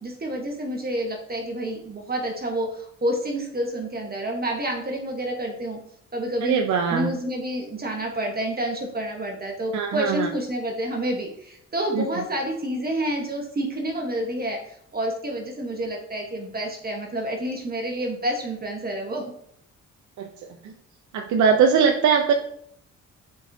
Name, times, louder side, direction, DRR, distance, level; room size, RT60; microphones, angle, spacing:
voice 1, 0.0-5.8 6.1-6.6 6.9-19.3, right 1 dB, 30° right, 1 dB, 1.2 m, -29 dB
voice 2, 6.4-7.1 9.7-10.3 11.9-12.0 20.2-20.3 20.6-20.7 21.1-22.3, right 6 dB, 70° right, 4 dB, 0.7 m, -21 dB
7.6 x 4.6 x 2.7 m, 0.71 s
cardioid pair, 90°, 30 cm